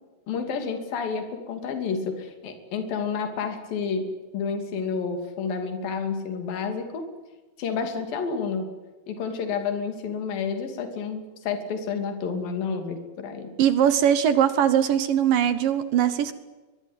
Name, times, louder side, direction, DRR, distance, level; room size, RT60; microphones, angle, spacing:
voice 1, 0.3-4.1 4.3-7.0 7.6-8.7 9.1-13.5, left 5 dB, 65° left, 5 dB, 4.4 m, -30 dB
voice 2, 13.6-16.3, right 9 dB, 70° right, 12 dB, 2.6 m, -21 dB
23.0 x 22.5 x 8.2 m, 1.2 s
omnidirectional pair, 4.6 m